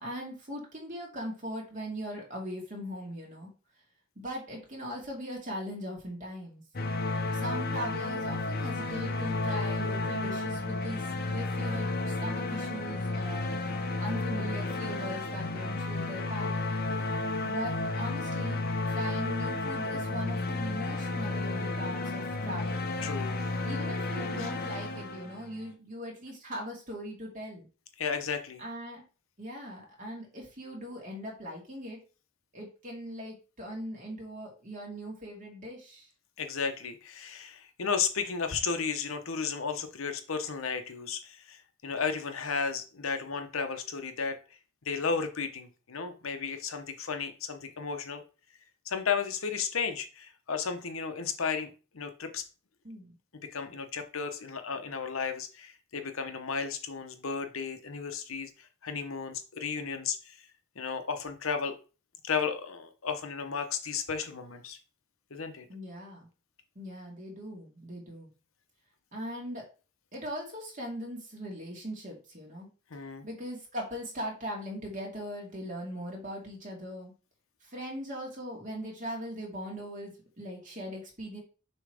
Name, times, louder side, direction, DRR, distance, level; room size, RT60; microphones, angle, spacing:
voice 1, 0.0-3.5 4.2-6.6 7.3-13.6 14.0-16.6 17.4-22.9 23.6-27.7 28.6-29.0 29.4-32.0 32.5-36.1 52.8-53.1 65.7-66.3 66.8-68.3 69.1-69.6 70.1-72.7 73.2-77.1 77.6-81.4, equal, 40° right, -2 dB, 2.4 m, -40 dB
sound 1, 6.7-25.7, left 2 dB, 45° left, 0.7 m, -32 dB
voice 2, 16.8-17.2 23.0-23.6 24.4-24.5 28.0-28.6 36.4-44.4 44.8-48.2 48.9-52.4 53.5-60.4 60.8-61.7 62.2-64.8 65.3-65.7 72.9-73.2, left 5 dB, 70° left, 7 dB, 0.9 m, -34 dB
6.8 x 3.1 x 4.9 m, 0.34 s
head